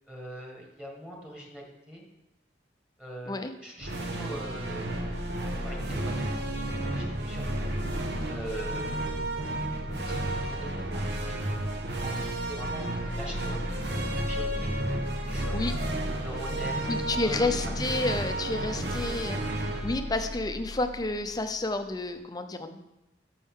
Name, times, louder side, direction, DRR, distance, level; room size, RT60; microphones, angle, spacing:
voice 1, 0.1-2.0 3.0-5.1 5.4-6.4 6.9-7.8 8.3-9.1 9.9-11.6 12.0-13.7 14.3-14.7 15.3-15.6 16.2-17.4, equal, 5° right, -1 dB, 1.6 m, -43 dB
sound 1, 3.8-21.2, right 1 dB, 65° right, 1.1 m, -32 dB
voice 2, 16.9-22.8, left 2 dB, 20° left, 8 dB, 0.6 m, -30 dB
12.5 x 5.5 x 3.7 m, 0.98 s
head